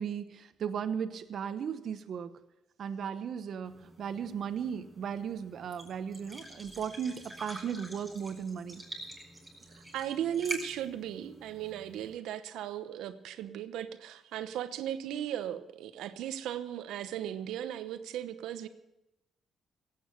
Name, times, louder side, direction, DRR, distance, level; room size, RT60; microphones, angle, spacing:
voice 1, 0.0-2.3 2.8-8.8, right 7 dB, 60° right, 12 dB, 1.0 m, -36 dB
sound 1, 3.6-12.1, right 2 dB, 15° right, 5.9 m, -46 dB
voice 2, 9.7-18.7, right 10 dB, 85° right, 11 dB, 0.9 m, -37 dB
16.5 x 8.6 x 6.8 m, 0.90 s
cardioid pair, 90°, 0 cm